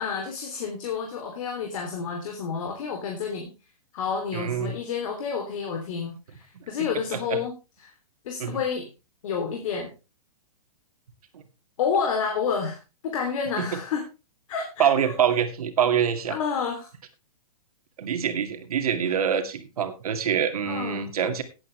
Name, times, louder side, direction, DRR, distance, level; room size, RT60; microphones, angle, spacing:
voice 1, 0.0-3.5 3.9-7.5 7.8-7.9 8.2-8.9 9.2-9.9 11.8-14.1 14.5-15.1 16.3-16.9 20.6-21.1, left 6 dB, 60° left, 2 dB, 3.1 m, -29 dB
voice 2, 4.3-4.7 6.6-7.4 8.4-8.6 11.3-11.4 13.6-13.8 14.8-16.4 18.0-21.4, right 8 dB, 75° right, 8 dB, 2.4 m, -25 dB
16.5 x 8.9 x 3.3 m, 0.28 s
hypercardioid pair, 140°, 19 cm